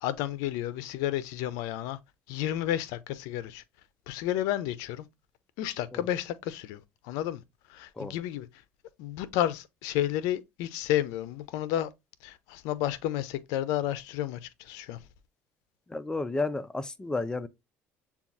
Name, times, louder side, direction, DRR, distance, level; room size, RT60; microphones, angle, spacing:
voice 1, 0.0-2.0 2.3-3.6 4.1-5.1 5.6-7.4 7.7-8.5 9.0-11.9 12.2-15.0, left 12 dB, 85° left, 0.5 m, -31 dB
voice 2, 15.9-17.5, left 3 dB, 15° left, 0.4 m, -32 dB
6.9 x 2.3 x 2.5 m
supercardioid pair, 100°, 6 cm